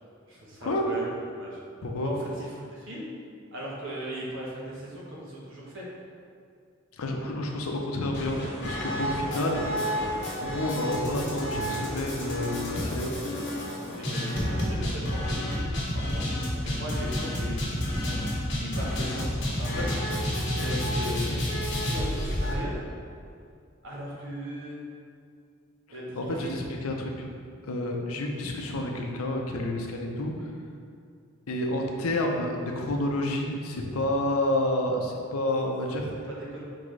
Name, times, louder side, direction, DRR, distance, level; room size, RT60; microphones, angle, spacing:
voice 1, 0.3-1.6 2.0-3.1 3.5-5.9 12.8-13.4 13.9-16.2 16.6-18.2 18.6-19.3 19.6-19.9 20.5-21.3 21.8-22.8 23.8-24.8 25.9-26.6 36.2-36.6, equal, 65° right, -4 dB, 1.0 m, -38 dB
voice 2, 1.8-2.1 7.0-9.7 10.4-13.1 26.1-27.3 27.6-30.3 31.5-36.1, left 1 dB, 90° left, 2 dB, 0.6 m, -29 dB
sound 1, 8.1-22.5, equal, 60° left, 1.1 m, -30 dB
4.5 x 3.7 x 3.2 m, 2.3 s
head